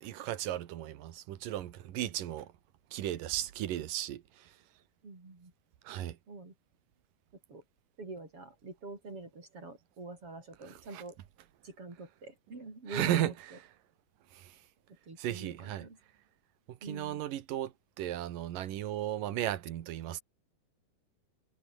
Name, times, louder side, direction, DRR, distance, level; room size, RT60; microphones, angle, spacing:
voice 1, 0.0-2.5 2.9-4.2 5.9-6.2 12.9-13.3 15.2-15.8 16.7-17.7 18.0-20.2, right 12 dB, 85° right, 3.1 m, -35 dB
voice 2, 5.0-5.5 6.3-6.5 7.5-7.6 8.0-11.2 11.6-13.6 15.0-16.0 16.8-17.2, right 3 dB, 45° right, 6.5 m, -45 dB
omnidirectional pair, 3.7 m